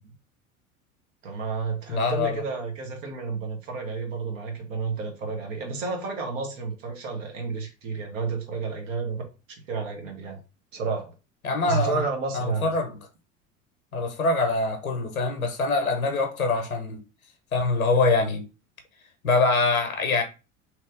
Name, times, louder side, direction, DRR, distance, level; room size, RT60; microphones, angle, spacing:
voice 1, 1.2-9.2 9.7-10.4 10.7-11.1 11.7-12.7, right 4 dB, 65° right, 1.1 m, -31 dB
voice 2, 1.9-2.4 11.4-12.0 12.3-13.0 13.9-17.0 17.5-18.4 19.2-20.2, left 3 dB, 85° left, 0.7 m, -24 dB
2.9 x 2.9 x 3.5 m
figure-of-eight pair, 75°, 42 cm